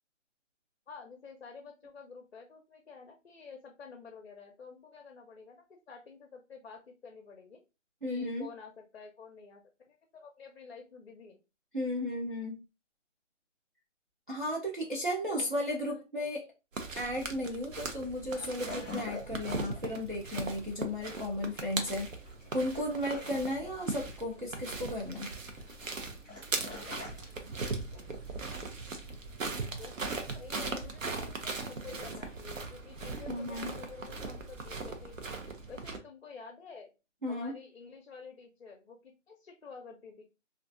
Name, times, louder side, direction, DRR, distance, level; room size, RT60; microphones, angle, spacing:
voice 1, 0.9-7.6 8.1-11.4 15.3-16.5 29.7-36.9 37.3-40.2, left 5 dB, 55° left, 3 dB, 0.5 m, -50 dB
voice 2, 8.0-8.5 11.7-12.6 14.3-16.4 17.0-22.1 22.5-25.3 31.9-32.0 33.3-33.7 37.2-37.5, left 1 dB, 45° right, -3 dB, 0.4 m, -34 dB
sound 1, 16.7-36.0, right 3 dB, 85° right, 0.7 m, -39 dB
sound 2, 16.8-29.9, left 2 dB, ahead, 0.6 m, -48 dB
sound 3, 24.1-24.2 24.6-24.7 25.1-25.2 25.6-25.7 26.1-26.2 26.6-26.7 27.1-27.2 27.6-27.7 28.1-28.2 28.6-28.7 29.1-29.2 29.6-29.7 30.1-30.2 30.6-30.7 31.1-31.2 31.6-31.7, right 1 dB, 65° right, 1.1 m, -48 dB
2.4 x 2.2 x 2.5 m, 0.29 s
hypercardioid pair, 175°, 38 cm